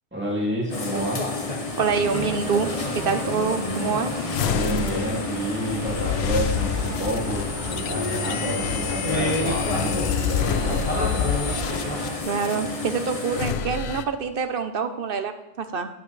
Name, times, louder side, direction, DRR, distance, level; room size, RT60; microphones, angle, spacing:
voice 1, 0.1-1.3 4.5-11.2, right 1 dB, 10° right, -4 dB, 2.4 m, -29 dB
sound 1, 0.7-13.5, left 2 dB, 35° left, 1.2 m, -30 dB
sound 2, 1.8-12.2, right 2 dB, 30° right, 1.6 m, -38 dB
voice 2, 1.8-4.3 12.2-15.9, right 6 dB, 55° right, 8 dB, 0.9 m, -26 dB
sound 3, 4.3-12.6 13.3-14.0, left 8 dB, 70° left, 0.8 m, -28 dB
11.0 x 10.0 x 3.3 m, 0.93 s
omnidirectional pair, 1.1 m